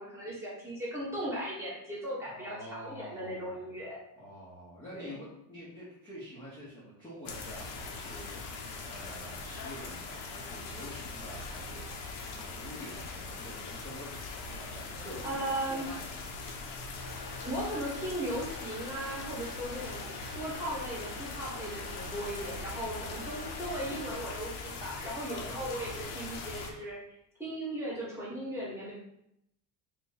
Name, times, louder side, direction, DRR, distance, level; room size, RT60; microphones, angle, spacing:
voice 1, 0.0-4.0 4.9-5.1 15.2-15.9 17.4-27.0 27.4-28.9, right 1 dB, 5° right, -6 dB, 1.0 m, -37 dB
voice 2, 2.2-3.6 4.2-14.1 14.5-16.2 22.8-23.2 25.3-25.6, equal, 10° left, -8 dB, 0.6 m, -47 dB
sound 1, 7.3-26.7, left 3 dB, 85° left, 0.8 m, -41 dB
sound 2, 17.0-24.4, left 1 dB, 55° left, 0.8 m, -46 dB
3.9 x 2.6 x 3.7 m, 0.77 s
cardioid pair, 180°, 45 cm